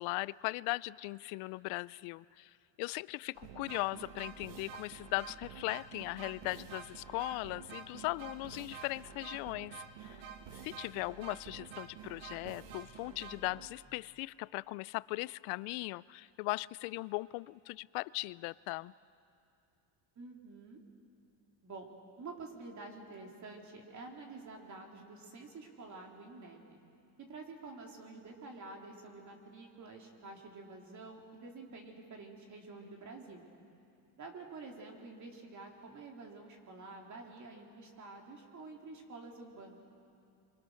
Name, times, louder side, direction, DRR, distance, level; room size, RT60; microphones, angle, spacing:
voice 1, 0.0-2.5 2.8-10.2 10.5-18.9, left 22 dB, 80° left, 20 dB, 0.6 m, -38 dB
sound 1, 3.4-14.0, right 7 dB, 70° right, 1.8 m, -49 dB
voice 2, 20.1-20.8 21.6-21.9 22.2-26.8 27.2-33.4 34.2-39.8, right 3 dB, 35° right, 1 dB, 3.0 m, -49 dB
25.5 x 25.0 x 6.4 m, 2.5 s
cardioid pair, 135°, 49 cm